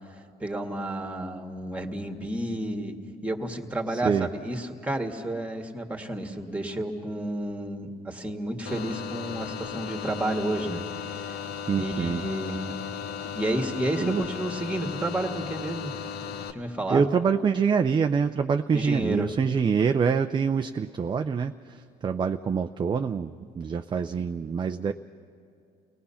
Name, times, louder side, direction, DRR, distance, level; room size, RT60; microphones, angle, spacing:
voice 1, 0.4-11.4 11.8-12.6 13.3-15.9 16.5-17.1 18.7-19.3, right 1 dB, 10° right, 3 dB, 1.8 m, -31 dB
voice 2, 3.9-4.3 11.7-12.3 14.0-14.2 16.9-24.9, right 6 dB, 25° right, 7 dB, 0.5 m, -25 dB
sound 1, 8.7-16.5, left 7 dB, 70° left, 1.2 m, -36 dB
30.0 x 18.5 x 5.7 m, 2.5 s
cardioid pair, 110°, 17 cm